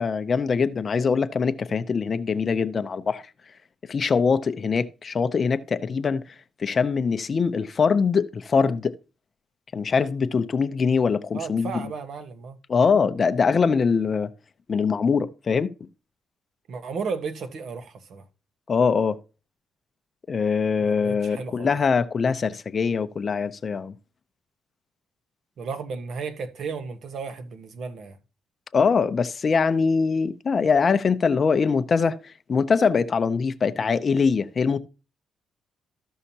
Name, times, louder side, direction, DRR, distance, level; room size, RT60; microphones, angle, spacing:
voice 1, 0.0-3.2 3.9-6.2 6.6-8.9 9.7-11.7 12.7-14.3 14.7-15.7 18.7-19.2 20.3-23.9 28.7-34.8, left 5 dB, 40° left, 0.6 m, -23 dB
voice 2, 11.3-12.6 16.7-18.2 20.8-21.7 25.6-28.2, right 5 dB, 65° right, 1.2 m, -34 dB
14.0 x 5.6 x 2.8 m
cardioid pair, 90°, 0 cm